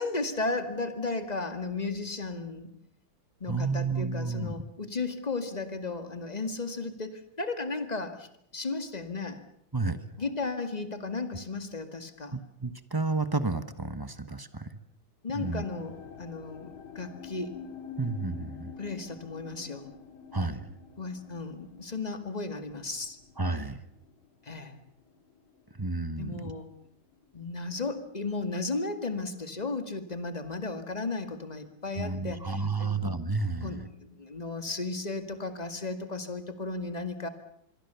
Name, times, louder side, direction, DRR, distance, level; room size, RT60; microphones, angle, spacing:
voice 1, 0.0-2.7 3.4-9.4 10.2-12.4 15.2-17.5 18.8-19.9 21.0-23.2 24.4-24.8 26.2-26.7 27.3-33.1 33.4-37.3, left 3 dB, 20° left, 9 dB, 2.0 m, -35 dB
voice 2, 3.5-4.5 9.7-10.0 12.3-14.7 15.3-15.6 18.0-18.7 20.3-20.6 23.4-23.8 25.8-26.5 32.0-33.8, right 3 dB, 15° right, 12 dB, 0.8 m, -31 dB
sound 1, 15.4-26.6 26.8-27.5 28.1-28.2, left 5 dB, 85° left, 3.0 m, -48 dB
26.0 x 22.5 x 7.0 m, 0.73 s
omnidirectional pair, 2.2 m